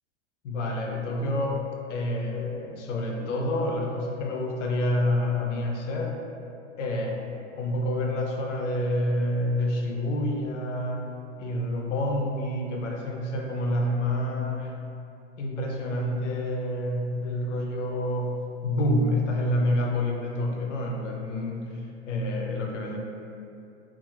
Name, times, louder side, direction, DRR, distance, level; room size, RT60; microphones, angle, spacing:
voice 1, 0.4-1.6 1.9-6.2 6.8-7.3 7.6-14.8 15.4-18.4 18.6-23.0, left 1 dB, 80° left, 1 dB, 0.5 m, -28 dB
2.8 x 2.3 x 2.4 m, 2.6 s
hypercardioid pair, 105°, 36 cm